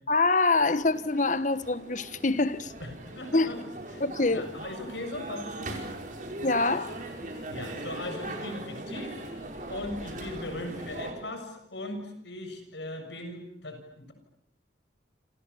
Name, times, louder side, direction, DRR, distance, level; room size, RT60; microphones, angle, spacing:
voice 1, 0.1-2.7 3.3-3.5 4.0-4.5 6.4-7.0, left 3 dB, 40° left, 1.3 m, -25 dB
sound 1, 0.8-11.1, right 2 dB, 45° right, 5.2 m, -40 dB
voice 2, 2.8-3.6 3.9-4.1 4.3-5.8 7.5-9.2 9.7-14.1, left 1 dB, 70° left, 7.0 m, -38 dB
29.5 x 27.5 x 7.2 m
head